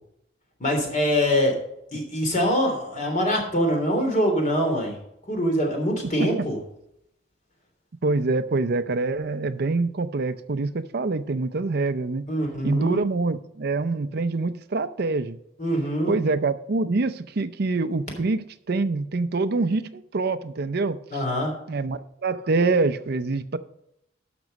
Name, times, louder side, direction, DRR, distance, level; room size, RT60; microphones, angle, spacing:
voice 1, 0.6-1.6 1.9-4.9 5.3-6.6 12.3-13.0 15.6-16.2 21.1-21.5, equal, 45° left, 2 dB, 3.3 m, -24 dB
voice 2, 8.0-12.2 12.6-15.4 16.1-21.0 21.7-23.6, right 3 dB, 55° right, 12 dB, 0.6 m, -25 dB
12.0 x 6.1 x 5.3 m, 0.78 s
head